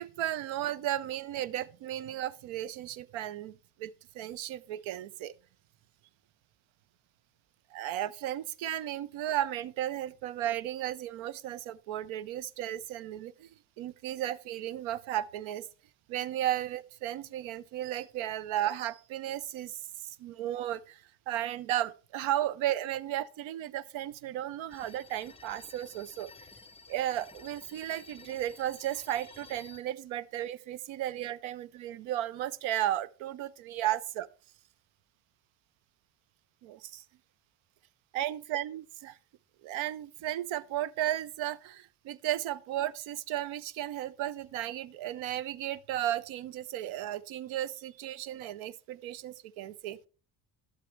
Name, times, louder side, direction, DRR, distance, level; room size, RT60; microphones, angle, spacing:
voice 1, 0.0-5.3 7.7-13.5 13.8-15.7 16.1-26.3 26.9-34.3 36.6-37.0 38.1-39.2 39.6-50.0, right 12 dB, 75° right, 0.6 m, -34 dB
sound 1, 24.7-29.8, left 4 dB, 15° left, 0.5 m, -53 dB
11.5 x 7.5 x 3.1 m
supercardioid pair, 65°, 47 cm